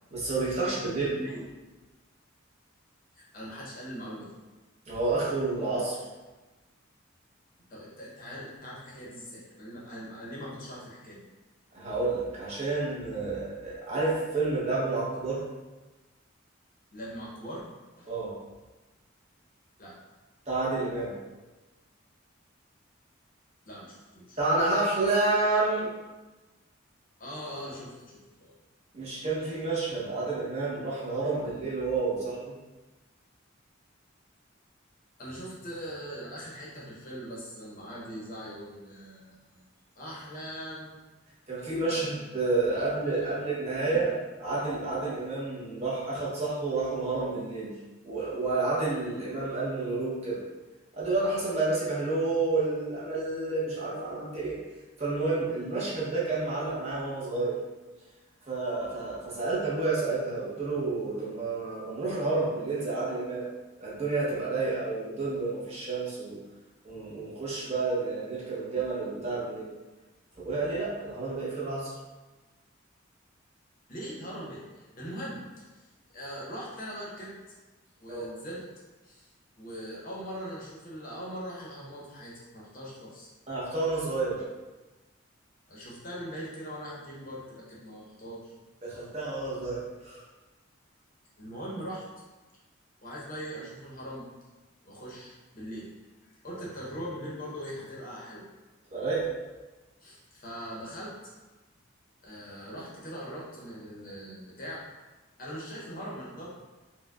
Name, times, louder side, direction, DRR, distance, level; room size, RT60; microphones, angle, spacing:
voice 1, 0.1-1.1 4.9-6.0 11.7-15.4 18.1-18.3 20.5-21.1 24.4-25.9 28.9-32.4 41.5-44.1 44.4-47.7 48.0-50.4 50.9-54.6 55.0-57.6 58.5-63.4 63.8-66.4 66.8-69.7 70.4-71.9 78.1-78.3 83.5-84.4 88.8-90.2 96.5-96.6 98.9-99.3, right 3 dB, 30° right, -7 dB, 0.8 m, -30 dB
voice 2, 0.8-1.4 3.1-4.3 7.7-11.2 16.9-17.7 18.0-18.1 19.8-20.0 23.7-24.4 27.2-28.5 35.2-39.6 39.9-40.9 41.9-42.1 42.7-43.5 43.8-44.1 73.9-75.8 76.1-77.3 78.0-78.6 79.0-79.3 79.6-83.3 85.7-88.5 88.9-89.0 91.4-92.0 93.0-94.3 94.8-95.9 96.4-98.5 100.0-101.3 102.2-104.8 105.4-106.5, equal, 45° left, -5 dB, 0.8 m, -41 dB
4.5 x 2.2 x 2.3 m, 1.2 s
head